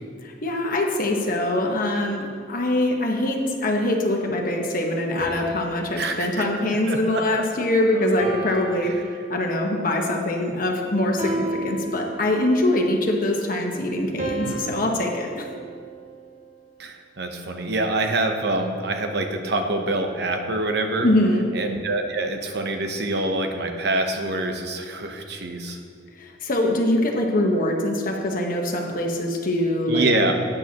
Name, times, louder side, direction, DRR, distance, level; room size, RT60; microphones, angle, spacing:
voice 1, 0.2-8.9 9.3-15.5 21.0-21.5 26.2-30.1, left 1 dB, 50° left, 1 dB, 1.3 m, -23 dB
sound 1, 5.2-7.6 8.2-9.6 11.2-12.6 14.2-16.5, right 1 dB, 45° right, 1.7 m, -34 dB
voice 2, 6.0-6.5 6.9-7.4 11.3-11.4 14.4-14.7 16.8-21.1 21.5-25.8 29.9-30.3, right 2 dB, 65° right, 4 dB, 1.0 m, -26 dB
12.5 x 9.0 x 3.0 m, 2.2 s
head